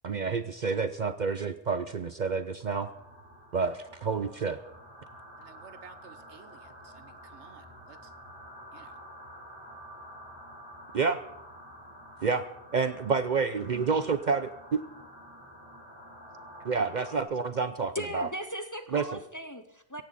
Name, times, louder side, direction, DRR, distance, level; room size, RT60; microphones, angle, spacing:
voice 1, 0.0-2.9 3.5-4.6 10.9-11.2 12.2-12.4 12.7-14.8 16.6-18.3 18.9-19.2, right 5 dB, 50° right, 0.7 m, -29 dB
sound 1, 2.8-17.2, equal, 25° right, 4.1 m, -49 dB
voice 2, 5.4-8.1 8.7-9.0, right 6 dB, 85° right, 1.2 m, -54 dB
voice 3, 17.9-20.0, equal, 20° left, 0.8 m, -37 dB
17.0 x 14.5 x 4.1 m
omnidirectional pair, 1.1 m